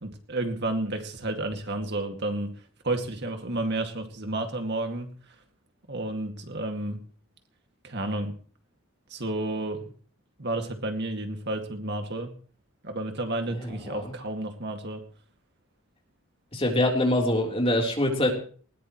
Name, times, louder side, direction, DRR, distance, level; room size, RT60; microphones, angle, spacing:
voice 1, 0.0-2.5 2.8-5.1 5.9-7.0 7.8-8.3 9.1-9.9 10.4-12.3 12.8-15.0, right 2 dB, 55° right, 5 dB, 2.2 m, -31 dB
voice 2, 13.5-14.2 16.5-18.3, left 1 dB, 25° left, 0 dB, 3.7 m, -25 dB
20.0 x 18.5 x 3.1 m, 0.43 s
head